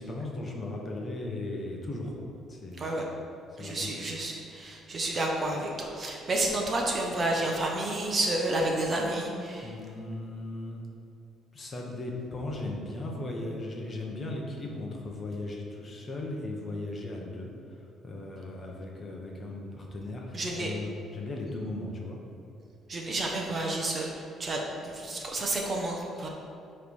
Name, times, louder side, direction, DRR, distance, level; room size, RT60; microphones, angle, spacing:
voice 1, 0.0-3.1 3.5-4.1 9.6-10.8 11.5-22.2, left 2 dB, 25° left, -1 dB, 1.0 m, -37 dB
voice 2, 3.6-9.7 20.3-20.7 22.9-26.3, right 2 dB, 25° right, 0 dB, 0.9 m, -30 dB
9.3 x 3.3 x 5.4 m, 2.6 s
cardioid pair, 155°, 0 cm